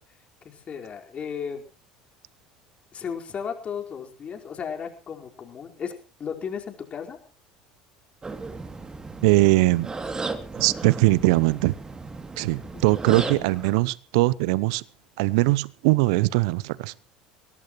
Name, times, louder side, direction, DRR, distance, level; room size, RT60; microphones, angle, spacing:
voice 1, 0.4-1.6 2.9-5.9 6.2-7.2 12.6-13.8, left 7 dB, 35° left, 4.6 m, -35 dB
sound 1, 8.2-13.8, right 3 dB, 20° right, 2.7 m, -35 dB
voice 2, 9.2-9.9 10.6-11.7 12.4-14.8 15.2-16.9, right 21 dB, 65° right, 0.8 m, -21 dB
23.5 x 18.0 x 3.1 m
hypercardioid pair, 70°, 3 cm